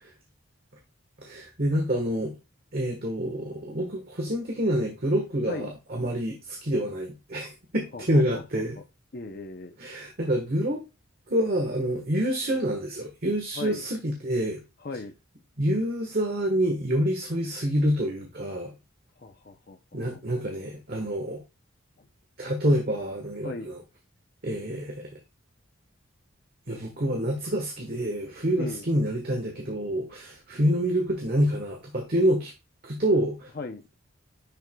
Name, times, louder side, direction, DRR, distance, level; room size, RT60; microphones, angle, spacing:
voice 1, 1.2-2.3 2.7-8.8 9.8-10.8 11.3-14.6 15.6-18.7 19.9-21.4 22.4-23.8 24.4-25.1 26.7-32.5 32.8-33.5, equal, 50° right, 2 dB, 1.3 m, -27 dB
voice 2, 7.9-8.6 9.1-9.8 13.6-13.8 14.8-15.1 19.2-20.4 22.0-22.1 23.4-23.8 28.6-28.9 33.5-33.8, left 3 dB, 45° left, 6 dB, 0.6 m, -38 dB
10.5 x 4.6 x 2.3 m, 0.25 s
head